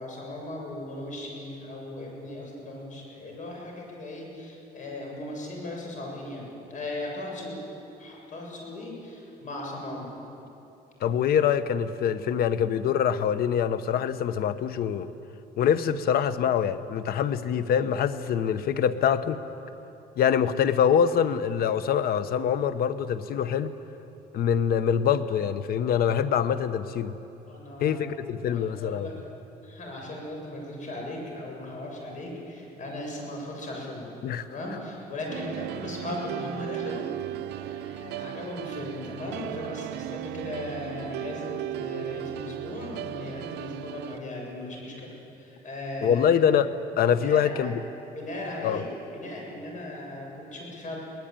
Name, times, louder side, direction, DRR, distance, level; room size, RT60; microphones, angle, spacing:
voice 1, 0.0-7.6 8.0-10.1 27.5-28.1 28.5-29.2 29.6-34.1 34.5-46.4 47.2-47.7 48.1-48.9 49.1-51.0, left 1 dB, 50° left, 0 dB, 7.4 m, -37 dB
voice 2, 11.0-15.1 15.6-19.4 20.2-23.7 24.3-27.1 27.8-29.1 34.2-34.4 46.0-46.7 47.0-47.8 48.6-48.8, left 8 dB, 65° left, 13 dB, 1.1 m, -24 dB
sound 1, 35.3-44.2, right 15 dB, 85° right, 0.6 m, -36 dB
23.0 x 18.5 x 9.1 m, 2.9 s
cardioid pair, 110°, 17 cm